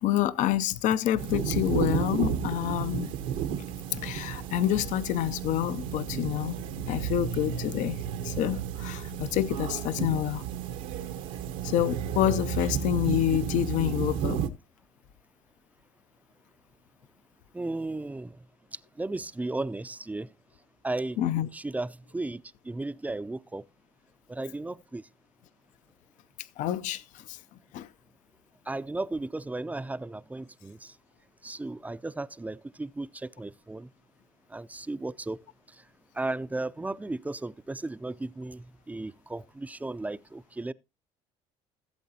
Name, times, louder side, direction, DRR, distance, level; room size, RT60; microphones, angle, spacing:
voice 1, 0.0-3.1 3.9-6.6 6.9-8.0 8.2-10.4 11.6-14.4 21.2-21.5 26.6-27.0 27.3-27.4 27.7-27.9, left 12 dB, 70° left, 0.6 m, -27 dB
sound 1, 1.2-14.5, right 9 dB, 80° right, 1.1 m, -32 dB
voice 2, 17.5-18.4 19.0-20.3 20.8-23.6 24.3-25.0 28.7-30.9 31.4-33.9 34.5-35.4 36.2-40.7, right 2 dB, 10° right, 0.4 m, -35 dB
16.0 x 7.7 x 2.8 m
cardioid pair, 95°, 13 cm